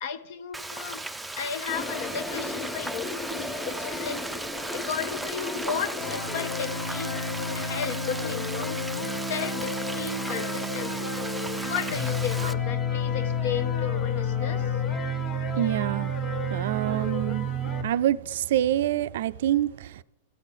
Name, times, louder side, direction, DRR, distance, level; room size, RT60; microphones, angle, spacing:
voice 1, 0.0-1.0 1.4-4.2 4.7-7.1 7.5-8.8 9.3-11.1 11.6-14.7, left 7 dB, 65° left, 0.9 m, -34 dB
Frying (food), 0.5-12.5, right 2 dB, 5° right, 0.4 m, -37 dB
Toilet flush, 1.7-6.9, left 1 dB, 15° left, 1.5 m, -36 dB
sound 1, 6.0-17.8, left 2 dB, 40° left, 1.5 m, -30 dB
voice 2, 15.6-16.1 16.5-17.5 17.8-20.0, right 12 dB, 70° right, 0.3 m, -26 dB
15.5 x 8.1 x 3.7 m
hypercardioid pair, 130°, 0 cm